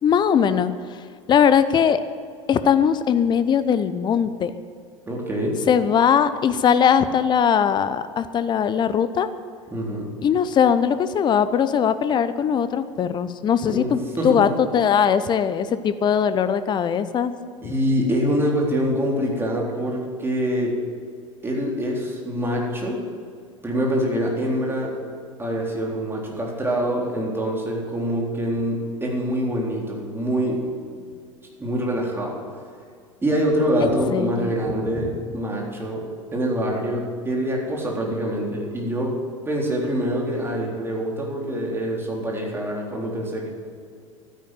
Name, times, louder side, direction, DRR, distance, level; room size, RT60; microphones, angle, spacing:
voice 1, 0.0-0.7 1.3-2.0 2.5-4.5 5.7-9.3 10.2-17.3 17.6-17.7 34.1-34.5, left 8 dB, 25° left, 12 dB, 0.8 m, -20 dB
voice 2, 5.1-5.6 9.7-10.1 13.7-14.5 17.6-20.8 21.4-23.1 23.6-25.0 25.4-30.7 31.6-32.4 33.2-36.1 36.3-39.2 39.5-43.5, equal, 15° right, -2 dB, 3.9 m, -25 dB
12.5 x 10.5 x 7.8 m, 2.2 s
figure-of-eight pair, 80°, 16 cm